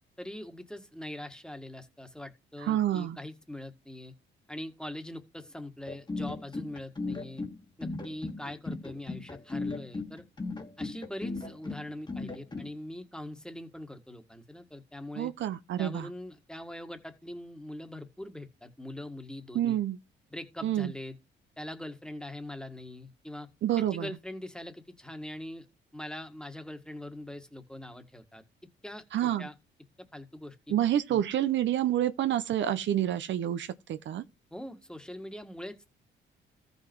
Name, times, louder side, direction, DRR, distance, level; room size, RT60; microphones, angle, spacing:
voice 1, 0.2-4.1 4.5-7.5 7.8-10.2 10.8-15.3 15.8-19.8 20.3-21.2 21.6-23.5 23.8-25.7 25.9-28.4 28.8-29.5 30.1-30.8 31.1-31.2 34.5-35.9, left 1 dB, 5° left, 1.7 m, -42 dB
voice 2, 2.6-3.2 15.2-16.1 19.5-20.0 20.6-20.9 23.6-24.1 29.1-29.5 30.7-34.2, right 11 dB, 70° right, 0.8 m, -28 dB
sound 1, 5.9-12.7, left 3 dB, 20° left, 1.7 m, -37 dB
14.0 x 5.4 x 4.6 m
cardioid pair, 90°, 20 cm